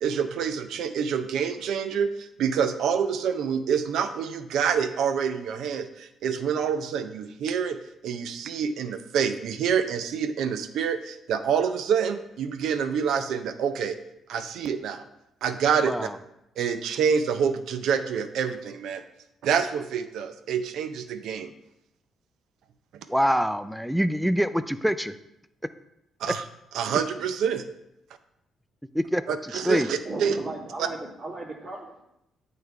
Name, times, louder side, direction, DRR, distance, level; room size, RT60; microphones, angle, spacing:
voice 1, 0.0-7.8 8.0-14.0 14.3-15.0 15.4-16.1 16.6-19.0 19.4-21.5 26.2-26.4 26.7-27.6 29.3-30.3, right 7 dB, 80° right, 9 dB, 0.5 m, -27 dB
voice 2, 23.1-25.1 28.9-29.4 29.6-29.9, equal, ahead, 12 dB, 0.4 m, -24 dB
voice 3, 29.7-32.0, right 2 dB, 50° right, -3 dB, 1.9 m, -36 dB
8.7 x 3.3 x 4.6 m, 0.85 s
cardioid pair, 90°, 0 cm